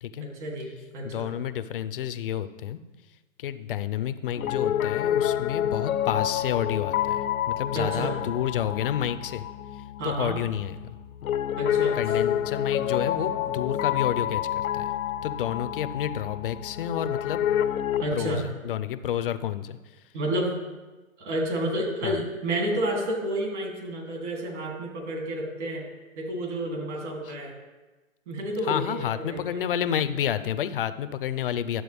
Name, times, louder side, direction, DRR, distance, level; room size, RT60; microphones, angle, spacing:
voice 1, 0.2-1.3 7.7-8.2 10.0-10.4 11.6-12.0 18.0-18.4 20.1-20.5 21.2-25.8 26.2-27.5 28.3-29.6, right 1 dB, 55° right, -1 dB, 3.1 m, -30 dB
voice 2, 1.0-2.8 3.4-9.4 9.7-10.8 11.9-14.9 15.2-17.5 18.1-20.0 22.0-22.2 27.2-27.3 28.7-31.8, left 10 dB, 40° left, 12 dB, 0.5 m, -30 dB
Piano, 4.4-18.1, left 10 dB, 80° left, 0.7 m, -28 dB
11.0 x 7.5 x 3.4 m, 1.2 s
hypercardioid pair, 150°, 41 cm